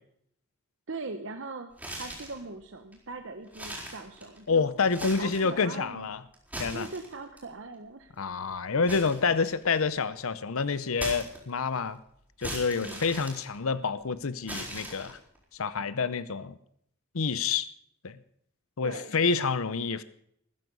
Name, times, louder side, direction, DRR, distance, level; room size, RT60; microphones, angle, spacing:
voice 1, 0.9-1.7 2.0-4.7 5.2-6.1 6.7-8.1 12.8-13.0 18.8-19.2, right 3 dB, 60° right, 7 dB, 0.9 m, -40 dB
sound 1, 1.7-2.4 2.9-3.0 3.5-4.5 4.8-5.5 6.3-7.4 8.9-9.9 11.0-11.8 12.4-14.0 14.5-15.4, right 1 dB, 5° right, 4.4 m, -39 dB
voice 2, 4.5-6.2 6.6-6.9 8.2-12.0 12.4-15.2 15.6-16.6 17.1-17.7 18.0-18.2 18.8-20.0, left 5 dB, 75° left, 15 dB, 0.7 m, -28 dB
14.5 x 14.0 x 5.4 m, 0.69 s
head